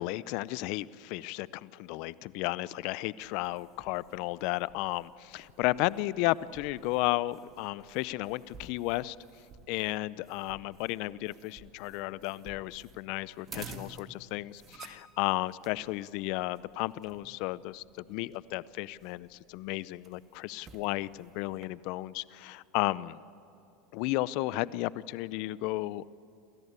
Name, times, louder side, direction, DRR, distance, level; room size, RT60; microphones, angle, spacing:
voice 1, 0.0-9.2 9.7-23.2 23.9-26.1, left 18 dB, 60° left, 19 dB, 0.6 m, -33 dB
sound 1, 3.2-21.7, right 4 dB, 35° right, 2.1 m, -53 dB
28.0 x 14.0 x 8.2 m, 2.9 s
hypercardioid pair, 105°, 0 cm